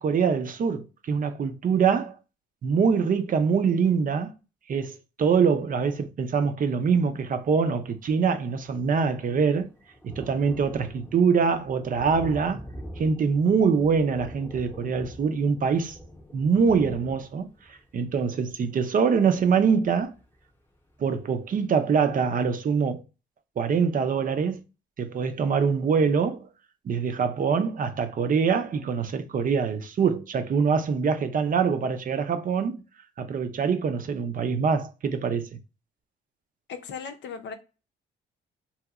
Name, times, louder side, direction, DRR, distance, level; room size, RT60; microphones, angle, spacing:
voice 1, 0.0-2.1 2.6-4.3 4.7-9.7 10.0-12.6 13.0-16.0 16.3-20.1 21.0-23.0 23.6-24.6 25.0-26.5 26.9-32.8 33.2-35.5, right 6 dB, 45° right, 0.5 m, -24 dB
Thunder, 7.6-7.7 7.9-20.5 21.0-21.1 21.4-21.5, equal, 10° left, 0.8 m, -45 dB
voice 2, 36.7-37.5, left 6 dB, 65° left, 0.6 m, -37 dB
2.9 x 2.8 x 2.3 m
cardioid pair, 90°, 20 cm